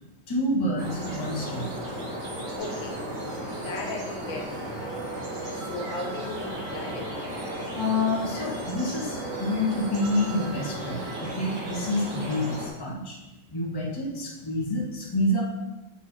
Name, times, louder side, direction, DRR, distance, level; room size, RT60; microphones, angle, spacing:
voice 1, 0.3-1.7 7.7-13.2 13.5-15.4, left 1 dB, 15° left, -4 dB, 1.3 m, -28 dB
sound 1, 0.8-12.7, right 1 dB, 65° right, 2.1 m, -35 dB
voice 2, 2.6-5.1 5.5-7.2, left 2 dB, 80° left, 1 dB, 1.9 m, -37 dB
Piano, 2.6-11.3, right 3 dB, 35° right, 2.6 m, -44 dB
8.7 x 4.6 x 4.5 m, 1.0 s
omnidirectional pair, 2.1 m